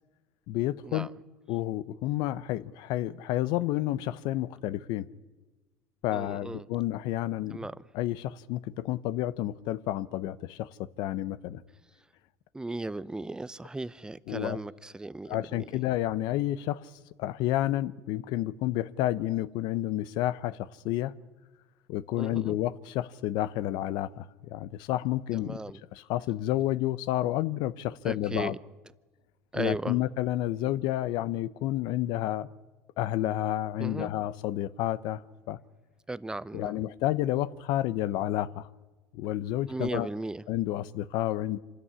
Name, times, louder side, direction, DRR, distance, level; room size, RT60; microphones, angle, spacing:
voice 1, 0.5-1.1 1.5-5.1 6.0-7.7 7.9-10.7 11.0-11.6 14.3-14.6 15.3-16.8 17.2-21.1 21.9-25.6 25.9-28.6 29.5-32.5 33.0-35.2 35.5-35.6 36.5-38.7 39.1-40.1 40.5-41.6, left 14 dB, 70° left, 0.8 m, -30 dB
voice 2, 6.1-6.7 7.5-7.8 12.5-15.8 22.2-22.6 25.3-25.8 28.1-28.6 29.5-30.0 33.8-34.1 36.1-36.8 39.7-40.4, right 2 dB, 10° right, 0.7 m, -36 dB
26.0 x 13.5 x 9.8 m
supercardioid pair, 95°, 8 cm